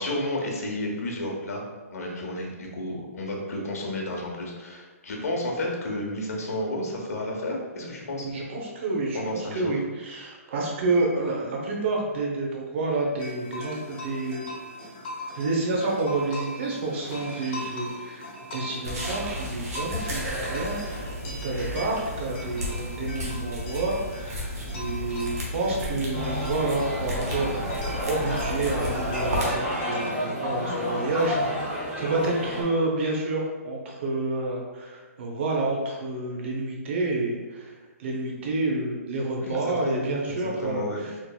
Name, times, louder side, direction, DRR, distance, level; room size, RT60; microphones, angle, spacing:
voice 1, 0.0-1.6 1.9-8.3 9.1-9.7 39.4-41.0, left 1 dB, 70° left, 0 dB, 1.0 m, -32 dB
voice 2, 8.2-14.5 15.3-41.1, right 2 dB, 50° right, -1 dB, 0.8 m, -29 dB
sound 1, 13.2-30.2, equal, 40° left, 1.2 m, -41 dB
sound 2, 18.8-29.5, left 1 dB, 80° right, 1.2 m, -33 dB
sound 3, 26.1-32.6, equal, 10° right, 1.1 m, -30 dB
4.5 x 2.8 x 2.3 m, 1.3 s
hypercardioid pair, 150°, 8 cm